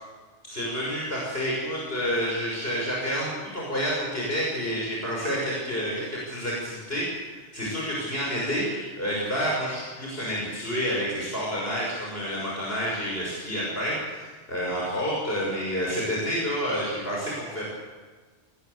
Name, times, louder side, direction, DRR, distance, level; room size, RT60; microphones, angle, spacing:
voice 1, 0.4-17.6, equal, 50° left, -4 dB, 6.6 m, -29 dB
25.0 x 19.5 x 8.2 m, 1.4 s
omnidirectional pair, 1.3 m